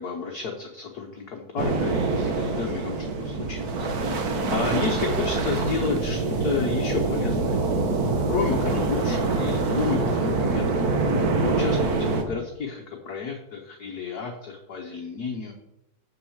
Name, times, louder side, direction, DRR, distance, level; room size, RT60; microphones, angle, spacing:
voice 1, 0.0-7.6 8.3-10.7 11.2-15.5, left 5 dB, 55° left, 2 dB, 1.3 m, -31 dB
sound 1, 1.6-12.2, right 3 dB, 50° right, 1.5 m, -25 dB
7.5 x 6.4 x 7.2 m, 0.88 s
omnidirectional pair, 2.2 m